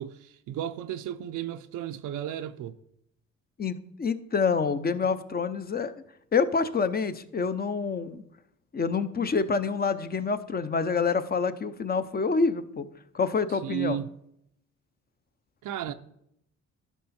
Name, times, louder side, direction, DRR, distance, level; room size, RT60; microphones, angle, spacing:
voice 1, 0.0-2.8 13.6-14.1 15.6-15.9, right 10 dB, 80° right, 0.6 m, -34 dB
voice 2, 3.6-5.9 6.3-8.2 8.7-12.9 13.1-14.0, left 5 dB, 30° left, 0.7 m, -27 dB
12.0 x 5.6 x 4.3 m
cardioid pair, 90°, 30 cm